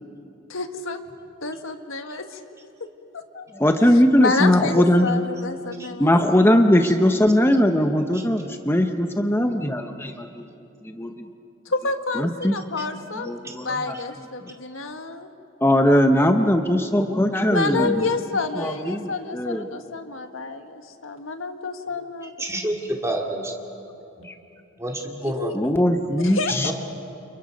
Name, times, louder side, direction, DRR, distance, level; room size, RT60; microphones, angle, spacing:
voice 1, 0.5-1.0 1.4-2.4 2.8-2.9 3.1-3.4 3.9-6.5 11.6-13.4 13.6-15.3 17.4-22.3 25.2-25.5 26.2-26.7, left 3 dB, 90° left, 6 dB, 1.7 m, -29 dB
voice 2, 3.6-5.2 6.0-10.4 10.8-11.1 12.2-12.6 13.3-13.9 15.6-18.0 18.6-19.7 24.2-24.3 25.5-26.7, left 1 dB, 10° left, 5 dB, 0.9 m, -20 dB
voice 3, 22.4-23.5 24.2-24.3 24.8-25.5 26.5-26.7, right 1 dB, 15° right, 0 dB, 2.5 m, -28 dB
29.5 x 28.5 x 5.3 m, 2.9 s
head